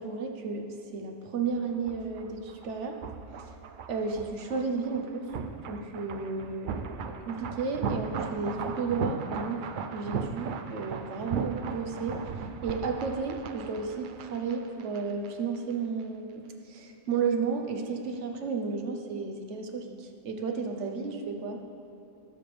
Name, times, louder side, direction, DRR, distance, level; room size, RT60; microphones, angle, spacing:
voice 1, 0.0-3.0 3.4-3.5 3.9-5.3 5.6-9.7 9.9-12.2 12.6-21.6, right 5 dB, 60° right, 4 dB, 1.2 m, -33 dB
sound 1, 1.5-15.3 15.5-15.7, right 5 dB, 75° right, 0.4 m, -37 dB
18.5 x 7.1 x 3.4 m, 3.0 s
omnidirectional pair, 1.4 m